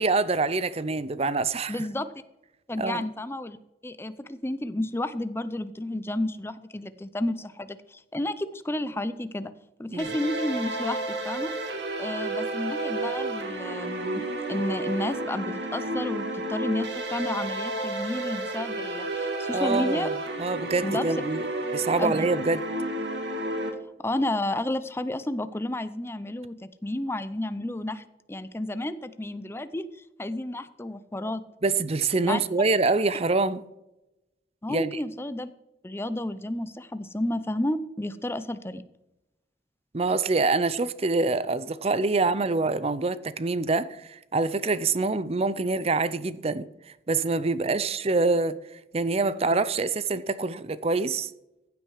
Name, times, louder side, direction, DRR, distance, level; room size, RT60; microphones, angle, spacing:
voice 1, 0.0-1.7 2.8-3.0 9.9-10.1 19.5-20.1 20.4-21.5 21.7-22.6 31.6-33.6 34.7-34.9 39.9-46.7 47.1-48.6 48.9-51.3, right 3 dB, 35° right, 0.6 m, -25 dB
voice 2, 1.7-2.1 2.7-3.6 3.8-9.5 9.8-11.5 12.0-20.1 20.8-21.1 22.0-22.3 24.0-31.4 32.3-32.4 34.6-35.5 35.8-38.8, left 1 dB, 15° left, 0.6 m, -31 dB
sound 1, 10.0-23.7, right 2 dB, 70° right, 2.4 m, -31 dB
15.0 x 8.3 x 4.9 m
head